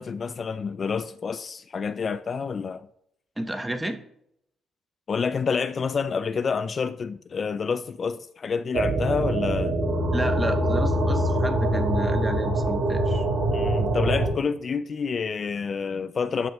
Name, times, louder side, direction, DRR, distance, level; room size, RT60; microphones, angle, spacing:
voice 1, 0.0-2.9 5.1-9.7 13.5-16.5, left 5 dB, 45° left, 0.3 m, -28 dB
voice 2, 3.4-4.0 10.1-13.3, right 1 dB, 10° right, 0.8 m, -31 dB
sound 1, 8.7-14.3, right 1 dB, 70° right, 2.7 m, -24 dB
12.0 x 6.2 x 2.3 m
cardioid pair, 90°, 0 cm